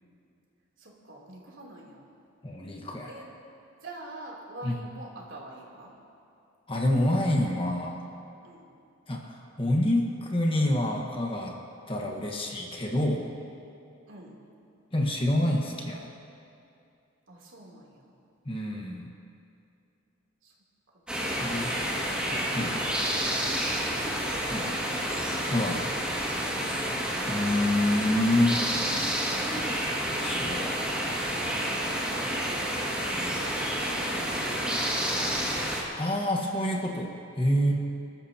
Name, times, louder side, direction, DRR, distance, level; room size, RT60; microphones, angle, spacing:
voice 1, 0.8-2.1 3.0-3.3 3.8-5.9 8.4-8.7 14.1-14.4 17.3-18.1 20.4-20.5 20.9-21.2 21.5-25.1 26.5-26.7 28.3-28.8 31.6-35.6 37.7-37.8, right 1 dB, 70° right, -3 dB, 3.3 m, -47 dB
voice 2, 2.4-3.1 4.6-4.7 6.7-8.0 9.1-11.5 11.9-13.3 14.9-16.1 18.4-19.1 21.4-21.7 22.1-22.8 24.5-24.7 25.4-25.8 27.3-28.6 30.2-30.9 33.2-33.3 35.9-37.7, left 1 dB, 25° left, 0 dB, 1.5 m, -27 dB
sound 1, 21.1-35.8, equal, 5° right, 2.2 m, -29 dB
27.5 x 13.0 x 2.9 m, 2.6 s
head